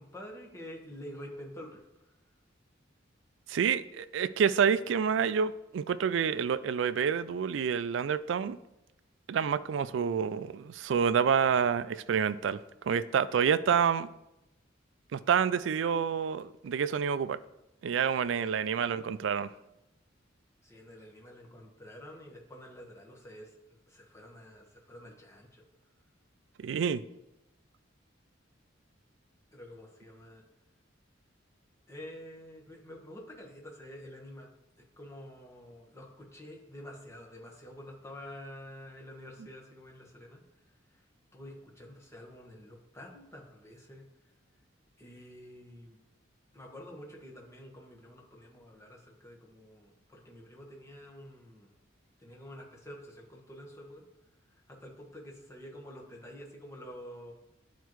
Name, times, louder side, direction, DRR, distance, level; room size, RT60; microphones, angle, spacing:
voice 1, 0.0-1.8 18.3-18.7 20.6-23.5 23.9-25.6 29.5-30.4 31.9-34.5 35.0-40.4 40.9-41.0 41.3-44.0 45.0-46.0 46.5-51.7 52.2-54.0 54.5-57.3, equal, 15° left, -1 dB, 1.4 m, -48 dB
voice 2, 3.5-8.6 9.3-12.6 12.9-14.1 15.1-17.4 17.8-19.5 26.6-27.0, right 7 dB, 70° right, 15 dB, 0.3 m, -28 dB
11.5 x 4.6 x 3.1 m, 0.91 s
head